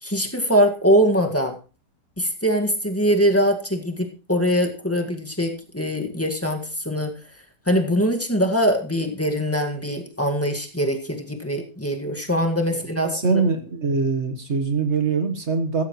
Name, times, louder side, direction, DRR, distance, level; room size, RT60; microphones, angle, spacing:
voice 1, 0.0-1.6 2.2-7.1 7.7-13.4, equal, 10° left, 3 dB, 1.8 m, -22 dB
voice 2, 13.0-15.8, right 4 dB, 45° right, 7 dB, 1.6 m, -23 dB
15.5 x 14.5 x 3.2 m, 0.33 s
omnidirectional pair, 1.8 m